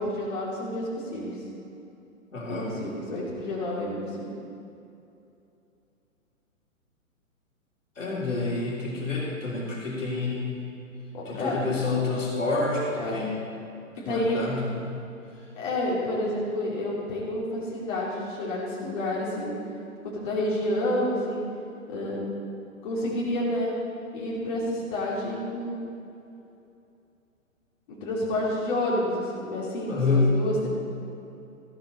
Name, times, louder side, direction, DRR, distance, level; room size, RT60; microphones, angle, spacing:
voice 1, 0.0-1.4 2.4-4.3 11.1-11.5 13.0-13.2 14.0-14.4 15.6-19.6 20.0-21.4 21.9-22.2 22.8-23.7 24.1-25.8 27.9-30.7, left 1 dB, 35° left, -6 dB, 2.8 m, -29 dB
voice 2, 2.3-2.8 8.0-10.6 11.2-13.4 14.0-15.0 29.9-30.4, left 3 dB, 65° left, -4 dB, 3.2 m, -28 dB
14.0 x 11.5 x 4.2 m, 2.7 s
figure-of-eight pair, 120°, 41 cm